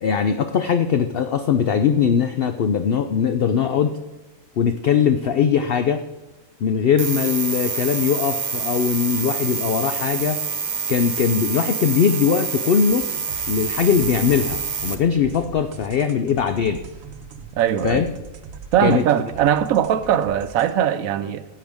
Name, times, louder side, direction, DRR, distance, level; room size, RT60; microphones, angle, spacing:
voice 1, 0.0-3.9 4.6-6.0 6.6-10.4 10.9-13.1 13.5-16.8 17.8-18.1 18.8-19.0, left 7 dB, 60° left, 0.6 m, -20 dB
sound 1, 7.0-15.0, right 5 dB, 45° right, 0.7 m, -27 dB
sound 2, 12.9-20.7, right 5 dB, 75° right, 1.2 m, -40 dB
voice 2, 17.6-18.0 18.7-21.5, right 10 dB, 90° right, 1.1 m, -20 dB
14.5 x 8.7 x 3.5 m
omnidirectional pair, 1.4 m